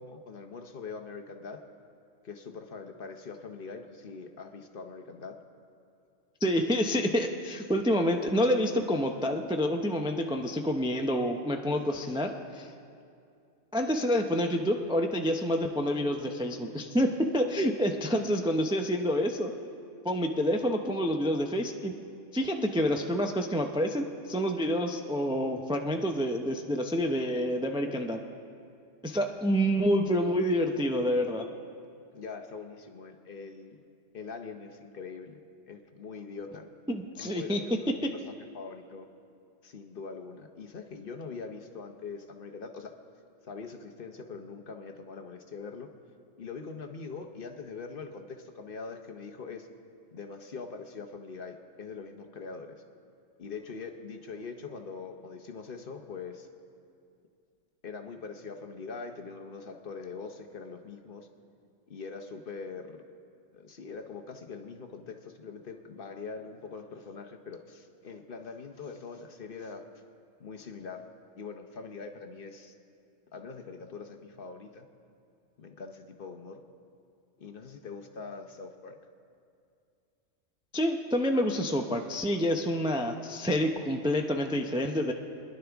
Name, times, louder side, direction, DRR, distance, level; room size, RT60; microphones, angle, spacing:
voice 1, 0.0-1.6 2.2-5.4 32.1-33.8 34.1-35.4 35.7-36.7 37.2-38.2 38.5-39.1 39.6-42.9 43.4-45.9 46.4-49.7 50.1-52.8 53.4-56.5 57.8-61.3 61.9-63.0 63.5-69.9 70.4-71.0 71.4-72.7 73.3-74.9 75.6-76.6 77.4-79.0, left 4 dB, 50° left, 5 dB, 0.9 m, -43 dB
voice 2, 6.4-12.7 13.7-19.5 20.0-21.9 22.3-28.2 29.0-31.5 36.9-37.6 80.7-85.1, equal, 5° right, 3 dB, 0.4 m, -28 dB
25.0 x 11.0 x 3.5 m, 2.4 s
omnidirectional pair, 1.3 m